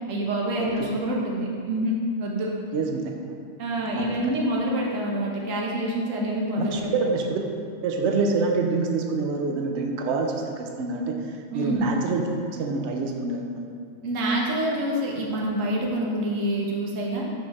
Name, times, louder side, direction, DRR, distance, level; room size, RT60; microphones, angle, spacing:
voice 1, 0.0-2.5 3.6-6.9 11.5-11.9 14.0-17.3, right 1 dB, 80° right, -3 dB, 1.2 m, -27 dB
voice 2, 2.7-3.2 3.9-4.3 6.6-7.4 7.8-13.7, right 3 dB, 65° right, 2 dB, 0.9 m, -27 dB
5.3 x 3.4 x 5.2 m, 2.3 s
omnidirectional pair, 1.3 m